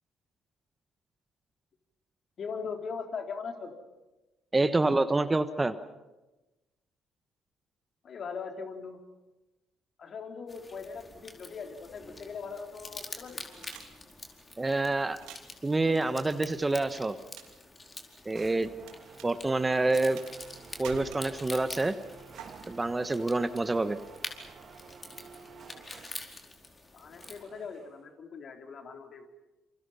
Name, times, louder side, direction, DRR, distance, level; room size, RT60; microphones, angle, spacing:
voice 1, 2.4-3.8 8.0-9.0 10.0-13.5 26.9-29.3, left 5 dB, 50° left, 4 dB, 3.7 m, -40 dB
voice 2, 4.5-5.7 14.6-15.2 15.6-17.2 18.2-18.7 19.2-20.2 20.8-22.0 22.7-24.0, right 2 dB, 20° right, 12 dB, 1.3 m, -27 dB
sound 1, 10.5-27.4, left 2 dB, 30° left, 4.6 m, -47 dB
sound 2, 13.6-14.5 15.1-15.6 16.9-17.6 17.8-18.9 19.2-19.3 20.2-20.5 20.8-21.7 22.4-22.5, right 9 dB, 70° right, 2.7 m, -47 dB
sound 3, 18.3-26.4 27.2-28.1, right 6 dB, 50° right, 2.4 m, -52 dB
28.5 x 27.5 x 5.7 m, 1.1 s
hypercardioid pair, 50°, 0 cm